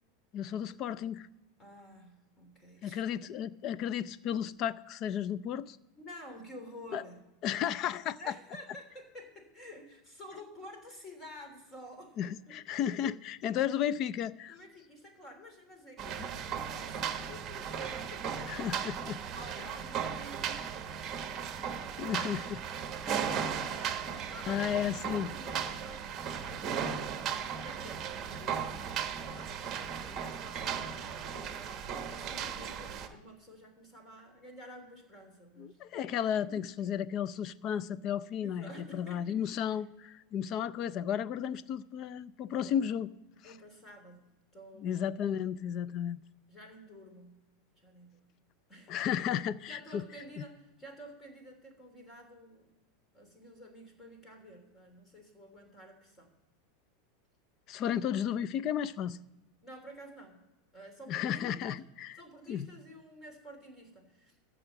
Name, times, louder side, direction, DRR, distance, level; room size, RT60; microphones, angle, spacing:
voice 1, 0.3-1.3 2.8-5.8 6.9-7.0 7.4-8.3 12.2-14.6 16.2-16.3 18.5-19.2 22.0-22.6 23.0-23.9 24.5-25.3 35.6-43.1 43.4-43.5 44.8-46.2 48.9-50.0 50.4-50.5 57.7-59.2 61.1-62.2 62.5-62.7, left 9 dB, 40° left, 0.5 m, -34 dB
voice 2, 1.6-3.1 6.0-7.2 8.2-12.5 12.9-13.0 14.5-18.8 19.3-20.9 24.0-24.9 25.1-31.8 32.1-35.8 36.5-36.9 38.4-39.4 39.7-39.8 42.6-42.9 43.4-44.3 44.5-45.0 46.5-47.4 47.7-48.2 48.7-49.0 49.7-52.7 53.1-56.3 59.6-60.4 60.7-61.7 62.2-64.4, equal, 20° left, 3.1 m, -51 dB
sound 1, 16.0-33.1, right 7 dB, 30° right, 1.2 m, -36 dB
13.0 x 4.9 x 8.1 m
supercardioid pair, 140°, 0 cm